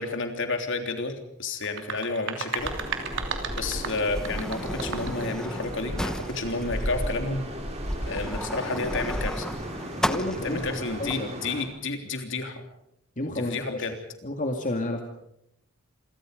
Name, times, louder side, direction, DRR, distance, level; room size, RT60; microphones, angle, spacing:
voice 1, 0.0-2.7 3.6-7.4 8.0-9.5 10.4-12.6 13.3-14.0, left 3 dB, 55° left, 6 dB, 3.3 m, -31 dB
sound 1, 1.6-5.3, right 5 dB, 55° right, 2.9 m, -34 dB
Sliding door, 2.6-11.2, equal, 5° left, 1.0 m, -33 dB
sound 2, 2.6-11.6, right 1 dB, 30° right, 5.2 m, -38 dB
voice 2, 10.0-10.6 11.0-11.3 13.2-13.9 14.2-15.0, left 1 dB, 35° left, 3 dB, 2.2 m, -30 dB
27.5 x 24.0 x 5.2 m, 0.79 s
head